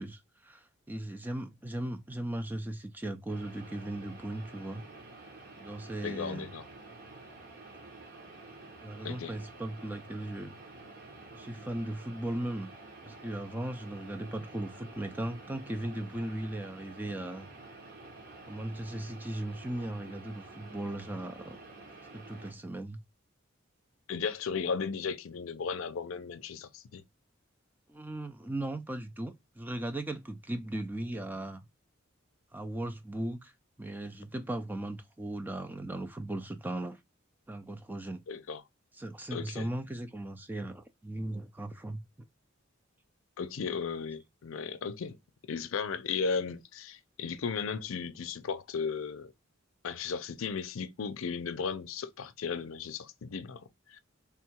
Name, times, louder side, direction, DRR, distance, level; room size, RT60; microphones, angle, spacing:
voice 1, 0.0-4.8 5.6-6.5 8.8-10.5 11.3-12.7 13.0-17.5 18.5-21.6 22.1-23.0 27.9-31.6 32.5-33.5 33.8-37.0 37.5-38.2 38.9-42.0, right 1 dB, 10° right, 0.3 m, -37 dB
sound 1, 3.3-22.5, right 2 dB, 50° right, 1.2 m, -50 dB
voice 2, 6.0-6.7 9.0-9.3 24.1-27.0 38.3-38.6 39.3-39.7 43.4-45.2 45.5-49.3 49.8-53.6 53.9-54.0, left 5 dB, 80° left, 0.5 m, -35 dB
3.5 x 2.3 x 4.4 m
head